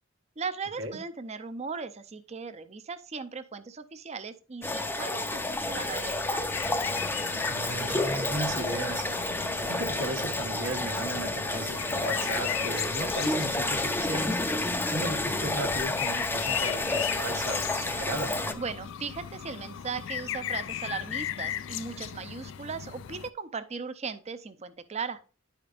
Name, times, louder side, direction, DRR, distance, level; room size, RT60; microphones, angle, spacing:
voice 1, 0.4-6.5 18.5-25.2, right 5 dB, 35° right, 0.6 m, -38 dB
sound 1, 4.6-18.5, left 2 dB, 10° left, 0.5 m, -30 dB
sound 2, 6.5-23.3, left 10 dB, 65° left, 0.3 m, -37 dB
voice 2, 7.5-9.0 9.6-14.4 14.9-18.3, right 1 dB, 80° right, 1.3 m, -36 dB
sound 3, 7.7-12.8, right 3 dB, 65° right, 1.1 m, -45 dB
10.5 x 5.1 x 2.5 m
head